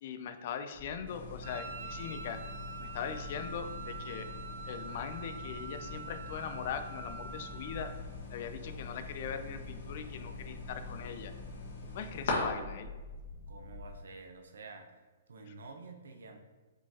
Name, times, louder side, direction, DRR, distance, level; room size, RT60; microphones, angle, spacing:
voice 1, 0.0-2.4 2.8-4.3 4.7-7.9 8.3-11.3 11.9-12.9, left 7 dB, 40° left, 9 dB, 0.3 m, -40 dB
sound 1, 0.7-13.9, left 2 dB, 10° left, 0.7 m, -47 dB
sound 2, 1.1-12.3, left 4 dB, 55° left, 1.3 m, -45 dB
Wind instrument woodwind instrument, 1.4-8.0, right 4 dB, 45° right, 0.4 m, -46 dB
voice 2, 13.5-14.9 15.3-16.4, right 3 dB, 80° right, 5 dB, 0.7 m, -49 dB
4.9 x 3.8 x 2.8 m, 1.3 s
hypercardioid pair, 170°, 0 cm